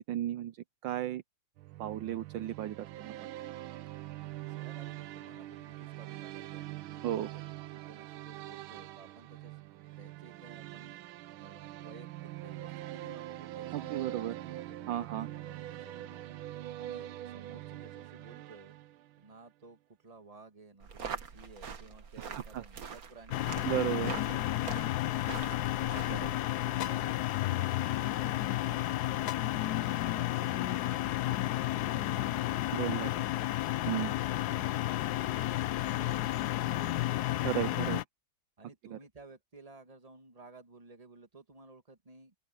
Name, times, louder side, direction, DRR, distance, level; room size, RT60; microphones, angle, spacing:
voice 1, 0.1-0.6 0.8-1.2 1.8-3.3 7.0-7.3 13.7-14.4 14.9-15.3 22.2-22.6 23.7-24.1 26.1-26.2 32.8-33.1 33.9-34.1 37.4-38.0 38.9-39.0, right 12 dB, 70° right, 1.3 m, -34 dB
sound 1, 1.6-19.3, right 14 dB, 90° right, 1.5 m, -44 dB
voice 2, 4.5-9.7 10.0-11.0 11.4-18.8 19.2-25.0 25.6-31.6 31.9-33.3 33.8-36.9 38.6-42.3, right 3 dB, 20° right, 1.8 m, -55 dB
sound 2, 20.8-26.4, right 6 dB, 50° right, 1.8 m, -43 dB
sound 3, 23.3-38.0, left 15 dB, 70° left, 1.0 m, -32 dB
open air
omnidirectional pair, 2.2 m